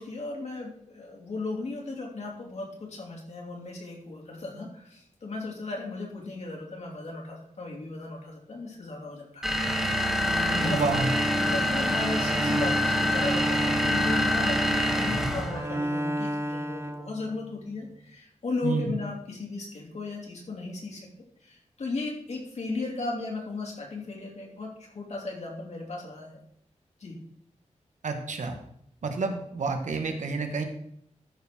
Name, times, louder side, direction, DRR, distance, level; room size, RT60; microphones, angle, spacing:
voice 1, 0.0-9.4 10.1-10.8 11.5-21.1 21.4-26.4 27.0-27.2, left 3 dB, 65° left, -1 dB, 3.1 m, -35 dB
sound 1, 9.4-15.6, equal, 5° right, 1.4 m, -26 dB
Bowed string instrument, 10.5-17.7, right 1 dB, 20° right, 0.6 m, -32 dB
voice 2, 10.7-11.1 18.6-18.9 28.0-28.6 29.0-30.6, right 4 dB, 75° right, 5 dB, 1.5 m, -29 dB
13.0 x 4.5 x 6.1 m, 0.70 s
wide cardioid pair, 140°, 13 cm